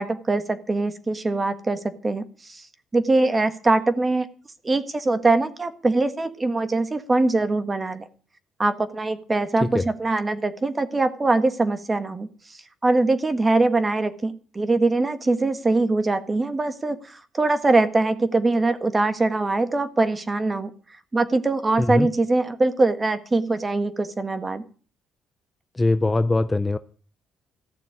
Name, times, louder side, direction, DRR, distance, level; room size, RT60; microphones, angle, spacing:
voice 1, 0.0-2.7 2.9-4.3 4.6-8.0 8.6-20.7 21.1-24.6, right 2 dB, 20° right, 1.6 m, -22 dB
voice 2, 21.8-22.1 25.7-26.8, left 2 dB, 15° left, 0.6 m, -21 dB
15.0 x 6.8 x 9.7 m
cardioid pair, 115°, 0 cm